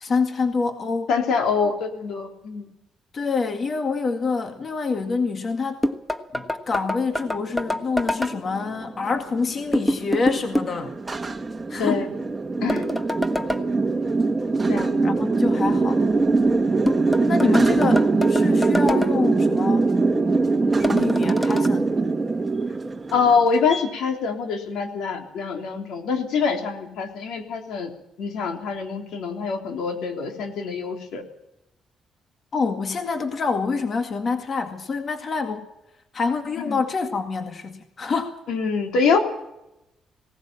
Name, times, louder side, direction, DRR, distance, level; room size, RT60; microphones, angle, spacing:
voice 1, 0.0-1.1 1.6-1.7 3.1-5.8 6.3-10.9 11.7-12.0 15.0-16.0 17.3-18.0 18.3-19.9 20.8-21.9 32.5-35.7 36.1-38.3, left 4 dB, 45° left, 6 dB, 2.0 m, -26 dB
voice 2, 1.1-2.7 11.8-12.1 12.6-12.8 14.7-15.0 23.1-27.9 28.2-31.2 36.7-36.8 38.5-39.2, left 5 dB, 80° left, 4 dB, 3.4 m, -24 dB
sound 1, 5.8-8.4 9.7-10.8 12.7-13.6 16.9-19.1 20.8-21.7, left 1 dB, 5° left, 1.4 m, -26 dB
sound 2, 7.5-23.8, right 3 dB, 20° right, 1.6 m, -22 dB
19.5 x 18.0 x 7.5 m, 0.89 s
cardioid pair, 90°, 0 cm